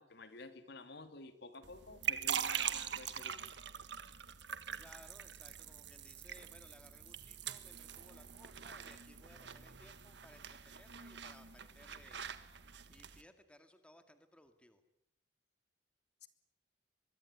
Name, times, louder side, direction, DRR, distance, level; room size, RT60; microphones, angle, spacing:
voice 1, 0.0-4.1 16.2-16.3, left 3 dB, 60° left, 9 dB, 2.8 m, -52 dB
sound 1, 1.6-13.2, right 9 dB, 65° right, 1.6 m, -43 dB
voice 2, 4.8-12.2 12.6-14.8, left 1 dB, 5° left, 8 dB, 2.0 m, -62 dB
24.5 x 23.0 x 9.8 m, 0.80 s
head